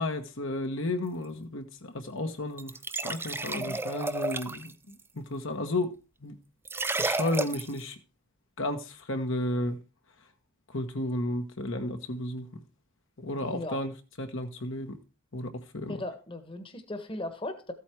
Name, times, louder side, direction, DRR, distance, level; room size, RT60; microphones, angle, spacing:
voice 1, 0.0-2.7 3.0-4.7 5.2-5.9 6.2-6.3 7.0-7.9 8.6-9.8 10.7-12.5 13.2-13.9 14.2-15.0 15.3-16.0, left 1 dB, 55° left, 1.4 m, -32 dB
sound 1, 2.6-4.7 6.6-7.8, right 2 dB, 10° right, 0.5 m, -31 dB
voice 2, 3.5-3.8 13.4-13.8 15.9-17.7, left 1 dB, 25° left, 1.4 m, -37 dB
14.5 x 8.4 x 4.7 m
head